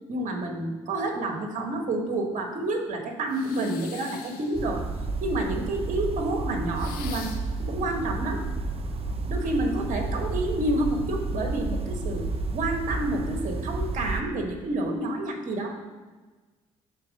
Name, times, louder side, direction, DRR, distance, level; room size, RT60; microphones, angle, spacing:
voice 1, 0.1-4.8 5.2-7.3 7.7-8.4 9.3-12.2 12.5-15.8, right 1 dB, 55° right, 3 dB, 1.2 m, -29 dB
sound 1, 3.3-4.7 6.7-7.6, left 7 dB, 75° left, 0.7 m, -43 dB
sound 2, 4.5-14.2, right 3 dB, 40° right, 0.8 m, -31 dB
6.5 x 4.1 x 5.3 m, 1.3 s
hypercardioid pair, 50°, 15 cm